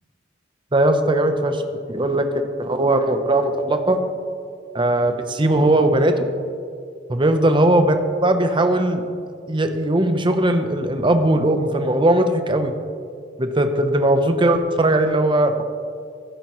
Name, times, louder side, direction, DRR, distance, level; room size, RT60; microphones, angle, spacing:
voice 1, 0.7-1.6 1.9-2.3 2.6-4.0 4.7-6.3 7.1-8.0 8.2-9.0 9.5-12.7 13.4-15.6, right 1 dB, 25° right, 7 dB, 0.7 m, -19 dB
15.5 x 12.0 x 3.1 m, 2.3 s
head